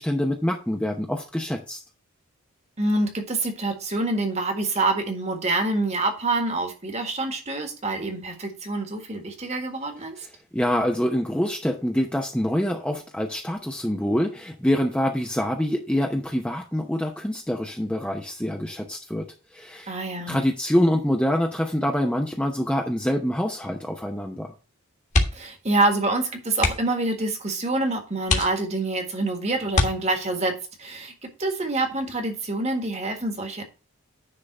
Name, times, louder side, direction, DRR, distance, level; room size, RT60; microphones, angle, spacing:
voice 1, 0.0-1.8 10.5-19.3 19.5-19.9 20.3-24.5, equal, 5° left, 0.7 m, -25 dB
voice 2, 2.8-10.3 19.9-20.4 25.3-30.5 30.8-33.6, right 2 dB, 30° right, 1.6 m, -26 dB
sound 1, 25.0-25.6 25.9-26.1 26.5-27.0 27.6-27.7 28.2-29.0 29.7-30.5 32.0-32.4 32.7-32.8, left 2 dB, 30° left, 1.6 m, -25 dB
9.9 x 3.8 x 6.6 m
head